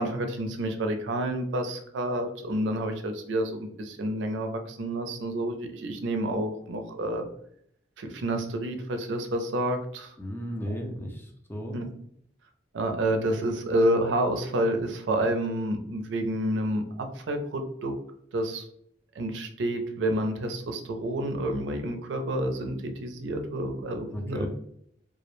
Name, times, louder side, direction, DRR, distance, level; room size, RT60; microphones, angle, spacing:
voice 1, 0.0-7.3 8.0-10.1 11.7-11.9 12.7-18.0 18.3-18.7 19.2-24.5, right 1 dB, 85° right, 5 dB, 0.4 m, -29 dB
voice 2, 10.2-11.8 24.1-24.5, equal, 10° left, 2 dB, 0.4 m, -35 dB
2.3 x 2.0 x 2.9 m, 0.70 s
head